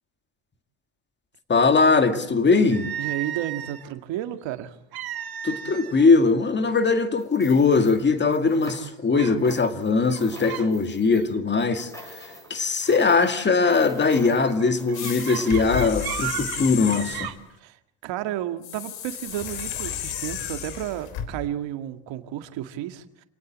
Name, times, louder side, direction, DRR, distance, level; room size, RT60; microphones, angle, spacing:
voice 1, 1.5-2.9 5.4-12.2 12.5-17.3, left 4 dB, 25° left, 2.1 m, -21 dB
sound 1, 2.7-3.9 4.9-6.1 6.4-6.7 7.3-7.4 7.9-8.4 9.1-9.4 10.0-10.7 11.0-11.4 12.8-13.1 13.6-17.4, right 11 dB, 55° right, 2.0 m, -35 dB
voice 2, 3.0-4.8 17.6-23.2, right 12 dB, 75° right, 2.1 m, -32 dB
sound 2, 7.2-9.1 9.4-15.9, equal, 5° left, 7.6 m, -46 dB
sound 3, 14.9-17.4 18.6-21.3, left 9 dB, 70° left, 3.5 m, -33 dB
28.5 x 19.0 x 7.5 m
cardioid pair, 160°, 45 cm